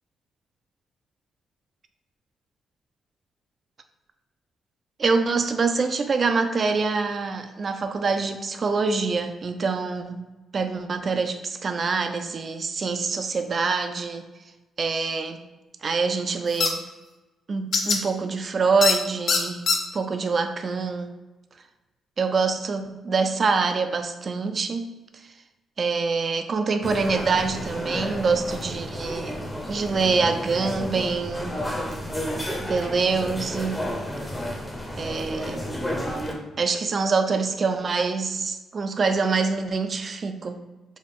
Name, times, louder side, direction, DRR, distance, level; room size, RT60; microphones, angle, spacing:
voice 1, 5.0-10.2 10.5-14.3 14.8-15.4 15.8-16.8 17.5-19.7 19.9-21.1 22.2-25.0 25.8-29.3 29.7-31.6 32.6-33.8 35.0-35.7 36.6-40.6, right 4 dB, 40° right, 7 dB, 0.3 m, -25 dB
sound 1, 16.6-16.7 17.7-18.0 18.8-19.0 19.3-19.8, left 4 dB, 55° left, 0.5 m, -21 dB
sound 2, 26.8-36.3, equal, 10° left, 0.6 m, -32 dB
4.1 x 2.3 x 3.6 m, 1.1 s
cardioid pair, 120°, 0 cm